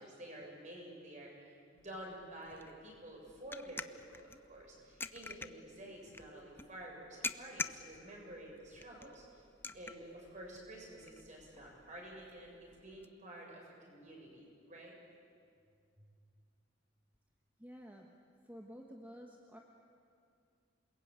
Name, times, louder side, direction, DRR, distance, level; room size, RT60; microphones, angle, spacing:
voice 1, 0.0-3.8 4.1-9.2 9.7-12.5 12.8-14.9 16.0-16.1, right 1 dB, 40° right, -1 dB, 7.2 m, -50 dB
sound 1, 1.8-13.1, left 3 dB, 10° left, 0.6 m, -48 dB
voice 2, 17.6-18.1 18.5-19.6, equal, 10° right, 1 dB, 1.4 m, -51 dB
27.5 x 21.5 x 9.0 m, 2.4 s
head